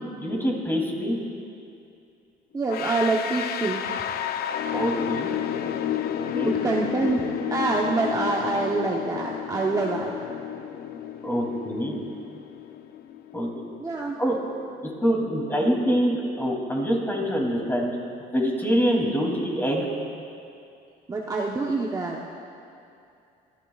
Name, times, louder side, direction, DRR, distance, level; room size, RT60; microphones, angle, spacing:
voice 1, 0.2-1.2 4.7-5.3 6.3-6.5 11.2-12.0 13.3-13.5 14.2-14.4 14.8-17.9 18.3-19.9, equal, 10° left, -1 dB, 2.8 m, -25 dB
voice 2, 2.5-3.9 6.4-10.3 13.8-14.2 21.1-22.2, right 3 dB, 20° right, -2 dB, 0.9 m, -26 dB
sound 1, 2.7-13.6, left 10 dB, 65° left, 0.6 m, -31 dB
25.5 x 12.5 x 2.4 m, 2.5 s
cardioid pair, 110°, 17 cm